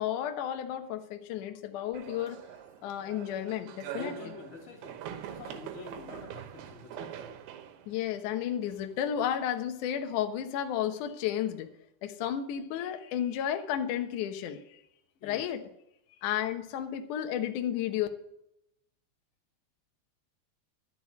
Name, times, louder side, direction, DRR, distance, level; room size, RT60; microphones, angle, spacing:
voice 1, 0.0-2.4 2.8-4.2 7.9-11.7 12.0-14.8 15.2-15.6 16.2-18.1, left 10 dB, 85° left, 6 dB, 1.7 m, -32 dB
sound 1, 1.9-9.0, right 10 dB, 70° right, 2.7 m, -44 dB
voice 2, 4.0-7.4 15.2-15.4, left 4 dB, 45° left, 1 dB, 2.5 m, -46 dB
12.0 x 6.9 x 8.2 m, 0.81 s
omnidirectional pair, 5.2 m